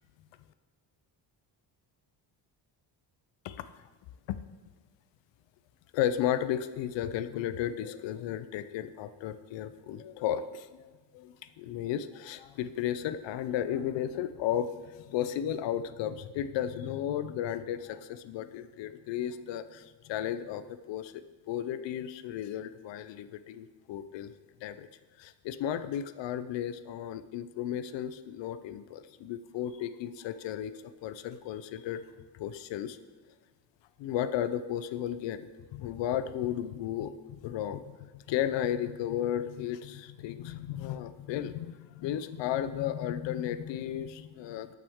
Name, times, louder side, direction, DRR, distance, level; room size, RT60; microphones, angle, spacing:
voice 1, 5.9-10.8 11.1-24.3 24.6-24.9 25.2-32.0 32.3-33.0 34.0-44.8, left 10 dB, 80° left, 12 dB, 0.6 m, -34 dB
13.0 x 5.8 x 3.6 m, 1.3 s
cardioid pair, 145°, 44 cm